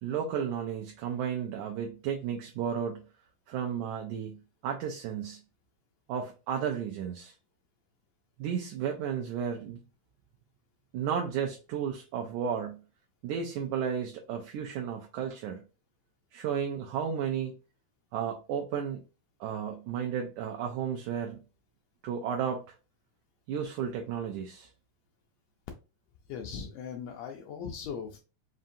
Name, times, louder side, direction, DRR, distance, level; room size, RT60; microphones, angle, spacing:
voice 1, 0.0-3.0 3.5-4.4 4.6-5.4 6.1-7.3 8.4-9.8 10.9-12.8 13.2-15.6 16.3-17.5 18.1-19.0 19.4-21.4 22.0-22.6 23.5-24.7, right 8 dB, 80° right, 2 dB, 1.9 m, -33 dB
voice 2, 26.3-28.2, left 6 dB, 85° left, 1 dB, 1.5 m, -39 dB
5.4 x 2.5 x 2.5 m, 0.32 s
omnidirectional pair, 3.7 m